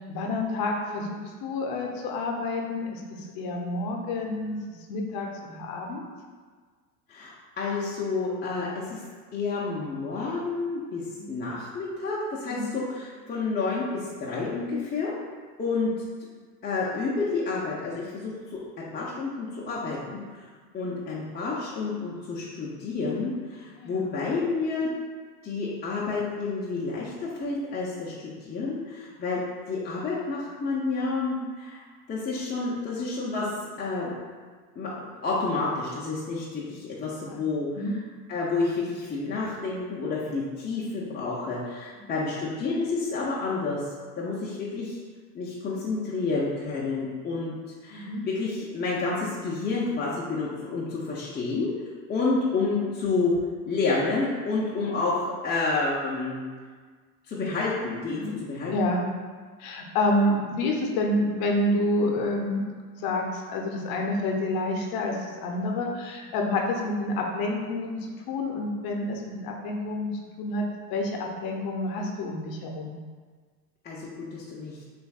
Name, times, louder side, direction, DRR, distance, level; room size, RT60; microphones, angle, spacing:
voice 1, 0.0-6.0 11.1-11.3 12.5-12.7 20.9-21.0 23.8-24.1 31.3-31.6 37.3-37.4 37.7-37.9 42.0-42.1 47.9-48.2 58.2-58.4 58.7-59.1 59.6-62.7 63.0-73.0, left 2 dB, 50° left, 1 dB, 0.8 m, -29 dB
voice 2, 7.1-9.0 9.3-11.0 11.3-15.1 15.6-15.9 16.6-18.6 18.9-20.4 20.7-24.9 25.4-29.4 29.7-33.5 33.8-34.1 34.8-37.7 38.3-43.8 44.2-45.0 45.3-47.6 47.8-51.7 52.1-53.3 53.6-56.4 57.3-58.7 73.8-74.8, left 3 dB, 20° left, -6 dB, 0.7 m, -29 dB
6.7 x 2.6 x 2.4 m, 1.5 s
hypercardioid pair, 95°, 47 cm